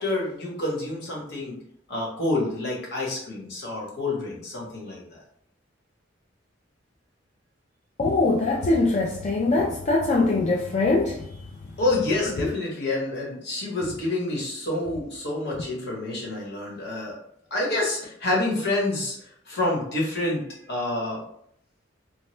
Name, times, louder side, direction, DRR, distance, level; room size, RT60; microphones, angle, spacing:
voice 1, 0.0-1.6 1.9-5.2 11.8-17.2 17.5-21.2, left 2 dB, 60° left, 1.1 m, -28 dB
voice 2, 8.0-11.2, left 3 dB, 40° left, 0.4 m, -22 dB
2.8 x 2.2 x 3.1 m
head